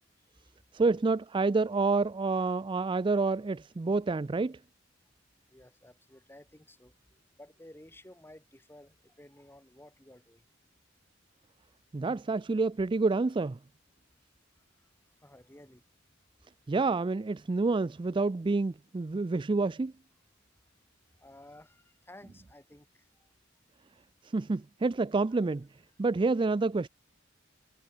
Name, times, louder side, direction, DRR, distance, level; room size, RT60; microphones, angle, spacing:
voice 1, 0.7-4.6 11.9-13.6 16.7-19.9 24.3-25.7 26.0-26.9, right 3 dB, 25° right, 0.4 m, -28 dB
voice 2, 5.5-7.0 7.4-10.4 14.6-14.9 15.2-15.8 21.2-23.3, left 1 dB, 10° left, 5.9 m, -54 dB
head